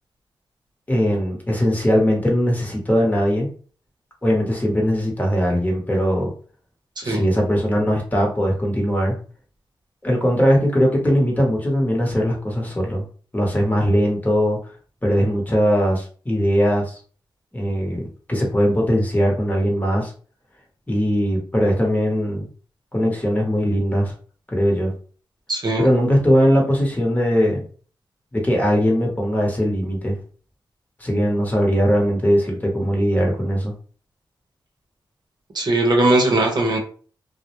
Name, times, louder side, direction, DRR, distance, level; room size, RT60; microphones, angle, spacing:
voice 1, 0.9-3.5 4.2-6.3 7.0-9.2 10.0-13.1 13.3-14.6 15.0-17.0 17.5-20.1 20.9-22.5 22.9-24.1 24.5-24.9 25.8-27.6 28.3-30.2 31.0-33.7, equal, 20° left, -1 dB, 1.0 m, -20 dB
voice 2, 25.5-25.9 35.5-36.8, right 2 dB, 55° right, 1 dB, 0.7 m, -19 dB
2.3 x 2.0 x 2.9 m, 0.41 s
cardioid pair, 65°, 9 cm